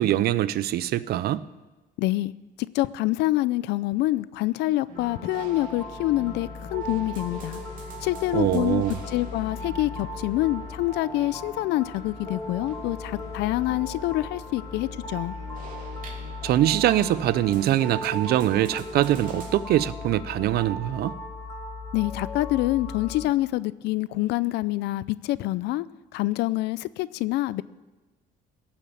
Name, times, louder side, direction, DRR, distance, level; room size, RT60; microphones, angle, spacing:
voice 1, 0.0-1.4 8.3-9.0 16.4-21.2, right 13 dB, 70° right, 17 dB, 0.6 m, -23 dB
voice 2, 2.0-2.3 2.7-7.6 8.0-15.3 21.9-25.9 26.1-27.6, left 17 dB, 85° left, 18 dB, 0.5 m, -26 dB
sound 1, 4.9-19.6, right 4 dB, 55° right, 2.9 m, -45 dB
sound 2, 5.0-23.3, left 2 dB, 20° left, 3.6 m, -37 dB
16.5 x 7.2 x 8.6 m, 1.2 s
cardioid pair, 110°, 17 cm